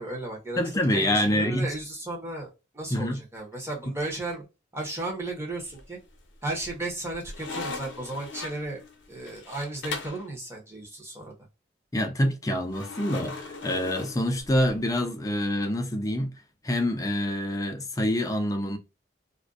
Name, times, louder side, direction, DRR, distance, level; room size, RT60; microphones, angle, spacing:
voice 1, 0.0-4.4 4.7-6.0 6.4-8.8 9.1-11.3, right 2 dB, 15° right, 0.8 m, -34 dB
voice 2, 0.6-1.7 2.9-3.2 11.9-16.3 16.6-18.8, left 1 dB, 20° left, 0.4 m, -26 dB
sound 1, 5.6-6.2 6.6-10.3 12.7-14.8, left 3 dB, 75° left, 0.6 m, -39 dB
2.5 x 2.1 x 2.3 m
head